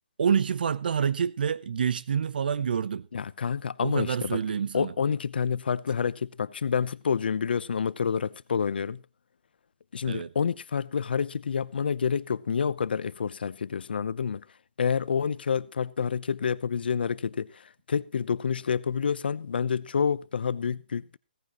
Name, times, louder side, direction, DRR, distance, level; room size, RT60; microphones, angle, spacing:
voice 1, 0.2-3.1 3.8-4.9 10.1-10.3, right 7 dB, 65° right, 0.7 m, -27 dB
voice 2, 3.1-4.4 4.7-9.0 9.9-14.4 14.8-21.2, left 6 dB, 75° left, 0.8 m, -28 dB
17.0 x 14.5 x 3.0 m
hypercardioid pair, 165°, 5 cm